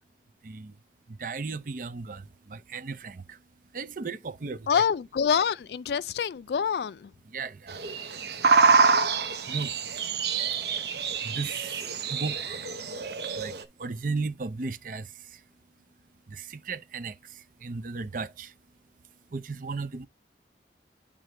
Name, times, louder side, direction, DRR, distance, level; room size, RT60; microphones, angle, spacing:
voice 1, 0.4-0.7 1.1-3.4 3.7-4.8 7.3-7.8 9.5-9.8 11.2-12.6 13.3-15.4 16.3-18.5 19.3-20.1, right 4 dB, 50° right, 0.5 m, -36 dB
voice 2, 4.7-7.1, left 7 dB, 70° left, 0.3 m, -26 dB
sound 1, 7.7-13.6, right 5 dB, 70° right, 0.9 m, -26 dB
9.2 x 3.7 x 3.2 m
head